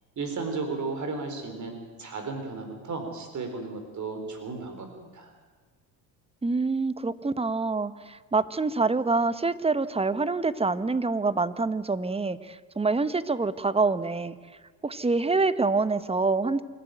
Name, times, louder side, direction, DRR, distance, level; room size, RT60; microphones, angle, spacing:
voice 1, 0.2-5.3, right 4 dB, 45° right, 6 dB, 4.4 m, -34 dB
voice 2, 6.4-14.4 14.8-16.6, right 3 dB, 15° right, 14 dB, 1.2 m, -26 dB
28.0 x 12.5 x 9.3 m, 1.4 s
supercardioid pair, 75°, 40 cm